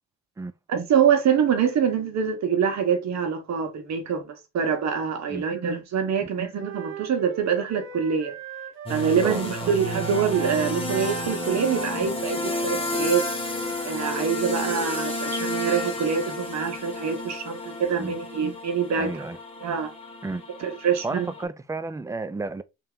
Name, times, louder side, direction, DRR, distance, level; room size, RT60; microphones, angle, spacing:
voice 1, 0.7-8.3 8.9-13.2 13.8-19.1 19.6-19.9 20.6-21.3, right 7 dB, 65° right, 1.1 m, -25 dB
Wind instrument woodwind instrument, 6.6-10.6 10.9-15.1, right 7 dB, 45° right, 1.3 m, -39 dB
sound 1, 8.9-21.4, left 1 dB, 20° left, 1.3 m, -31 dB
voice 2, 9.2-9.7 12.0-12.1 18.0-18.1 19.0-19.4 20.2-20.4 21.0-22.6, right 3 dB, 10° right, 0.4 m, -32 dB
3.3 x 2.9 x 3.6 m
cardioid pair, 90°, 30 cm